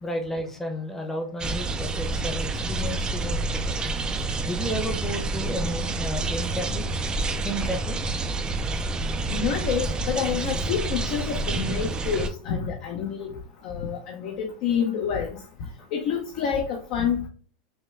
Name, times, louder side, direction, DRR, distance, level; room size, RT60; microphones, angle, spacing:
voice 1, 0.0-3.8 4.4-6.9 7.4-8.0 8.4-8.5, equal, 5° left, 3 dB, 0.9 m, -32 dB
sound 1, 1.4-12.3, right 2 dB, 15° right, 0.4 m, -28 dB
voice 2, 9.3-13.3 13.6-15.4 15.9-17.3, left 7 dB, 50° left, 2 dB, 0.8 m, -28 dB
5.8 x 2.2 x 3.2 m, 0.42 s
supercardioid pair, 145°, 5 cm